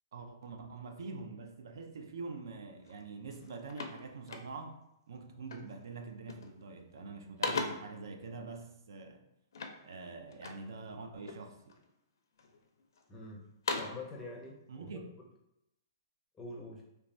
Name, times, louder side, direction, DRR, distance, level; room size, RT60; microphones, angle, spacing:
voice 1, 0.1-4.8 5.1-9.2 9.8-11.8 14.7-15.1, right 4 dB, 75° right, 6 dB, 0.4 m, -45 dB
sound 1, 2.8-3.0 3.3-4.9 5.5-5.8 6.1-6.6 7.0-8.0 9.5-10.7 11.2-11.9 12.4-13.0 13.4-14.1, left 4 dB, 80° left, 0.4 m, -40 dB
voice 2, 13.1-13.4 13.7-15.0 16.3-16.8, left 2 dB, 10° left, -2 dB, 0.5 m, -45 dB
3.1 x 2.2 x 2.5 m, 0.85 s
hypercardioid pair, 165°, 2 cm